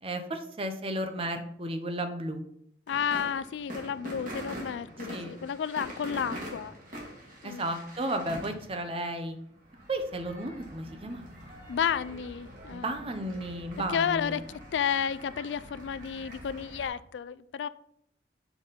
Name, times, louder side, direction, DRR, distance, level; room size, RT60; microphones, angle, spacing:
voice 1, 0.0-2.4 5.1-5.4 7.4-9.4 9.9-11.3 12.7-14.4, right 1 dB, 30° right, 0.7 m, -33 dB
voice 2, 2.9-6.7 7.4-7.7 11.7-12.9 13.9-17.7, left 7 dB, 85° left, 0.3 m, -31 dB
sound 1, 2.9-16.9, equal, 50° right, 2.0 m, -44 dB
7.0 x 4.1 x 5.2 m
head